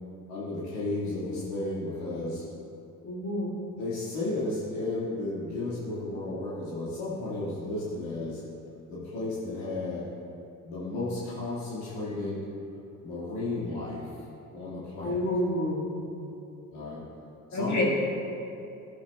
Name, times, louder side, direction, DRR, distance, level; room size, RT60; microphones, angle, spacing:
voice 1, 0.3-2.4 3.7-8.4 8.9-10.1 10.6-12.4 13.0-14.1 14.5-15.3 16.7-17.0 17.5-17.8, left 2 dB, 70° left, -8 dB, 2.1 m, -33 dB
voice 2, 3.0-3.6 15.0-15.9 17.5-17.8, left 1 dB, 40° left, -4 dB, 2.0 m, -29 dB
11.0 x 9.3 x 2.3 m, 2.7 s
hypercardioid pair, 55°, 45 cm